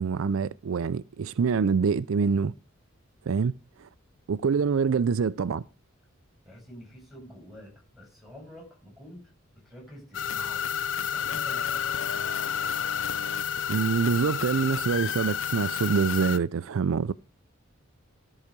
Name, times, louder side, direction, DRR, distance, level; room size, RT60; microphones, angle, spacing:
voice 1, 0.0-2.5 3.3-3.5 3.8-3.9 4.3-5.6 13.7-17.1, right 5 dB, 70° right, 0.4 m, -25 dB
voice 2, 6.4-9.3 9.6-10.6 10.9-12.4, equal, ahead, 6.8 m, -48 dB
sound 1, 10.1-16.4, left 8 dB, 65° left, 0.6 m, -30 dB
13.5 x 4.8 x 6.6 m
head